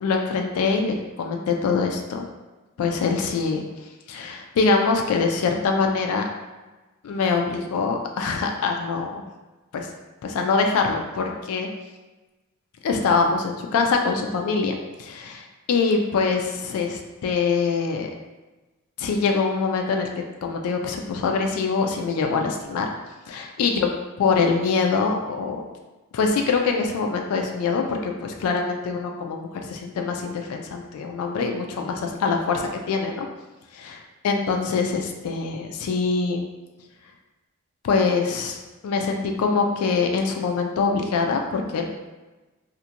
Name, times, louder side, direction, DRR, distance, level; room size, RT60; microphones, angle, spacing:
voice 1, 0.0-2.2 2.8-3.6 4.1-6.3 7.0-9.2 9.7-9.9 10.2-11.7 12.8-18.1 19.0-20.1 20.4-22.9 23.3-23.9 24.2-25.6 26.1-33.3 34.2-36.4 37.8-38.6 38.8-42.1, left 4 dB, 80° left, 2 dB, 0.3 m, -24 dB
2.5 x 2.1 x 2.8 m, 1.1 s
head